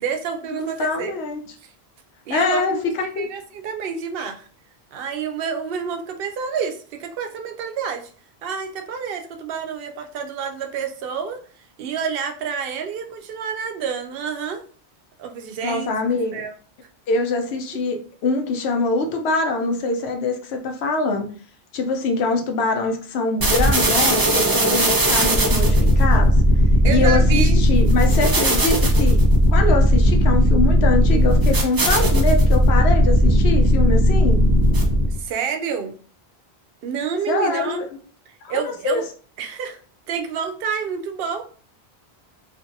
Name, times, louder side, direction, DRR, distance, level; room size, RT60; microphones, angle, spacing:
voice 1, 0.0-1.1 1.6-1.7 2.3-2.8 3.2-4.5 4.9-8.1 8.4-11.4 11.8-14.6 15.2-15.9 16.3-16.5 26.8-27.6 35.1-36.0 36.8-37.8 38.5-39.1 39.4-39.8 40.1-41.4, right 6 dB, 65° right, 6 dB, 0.7 m, -28 dB
voice 2, 0.6-1.4 2.3-3.3 15.6-16.4 17.1-21.3 21.7-26.4 26.9-29.2 29.5-34.5 37.3-37.9 38.4-39.0, left 3 dB, 80° left, 3 dB, 0.9 m, -24 dB
sound 1, 23.4-35.2, equal, 35° right, 0.3 m, -16 dB
2.7 x 2.5 x 2.6 m, 0.42 s
omnidirectional pair, 1.1 m